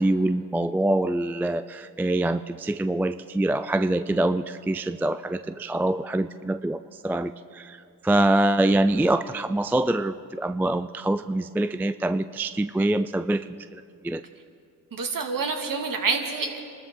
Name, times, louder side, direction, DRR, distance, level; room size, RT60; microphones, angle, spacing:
voice 1, 0.0-14.2, right 1 dB, 5° right, 11 dB, 0.3 m, -25 dB
voice 2, 14.9-16.6, right 4 dB, 50° right, 3 dB, 2.2 m, -27 dB
26.0 x 13.0 x 3.8 m, 2.4 s
supercardioid pair, 55°, 43 cm